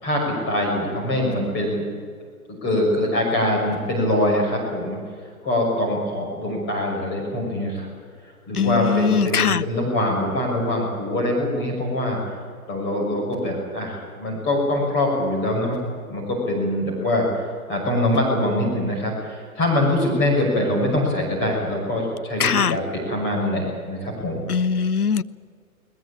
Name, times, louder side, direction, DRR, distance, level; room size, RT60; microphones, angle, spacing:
voice 1, 0.0-1.9 2.5-5.0 5.4-7.9 8.5-12.2 12.7-15.8 16.1-17.3 17.7-24.4, left 1 dB, 25° left, -1 dB, 6.2 m, -23 dB
voice 2, 8.5-9.6 22.4-22.8 24.5-25.2, left 6 dB, 85° left, 16 dB, 0.8 m, -21 dB
21.0 x 20.0 x 8.7 m, 2.1 s
figure-of-eight pair, 120°, 44 cm